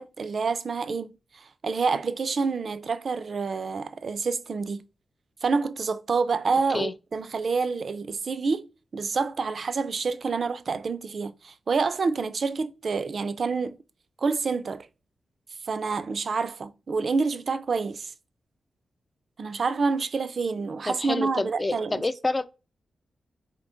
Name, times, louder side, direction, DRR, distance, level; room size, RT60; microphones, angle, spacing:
voice 1, 0.0-4.9 5.4-13.8 14.2-14.9 15.7-18.1 19.4-22.0, right 4 dB, 50° right, 0.4 m, -28 dB
voice 2, 20.9-22.5, left 2 dB, 20° left, 0.3 m, -28 dB
3.8 x 3.6 x 3.7 m
wide cardioid pair, 125°, 0 cm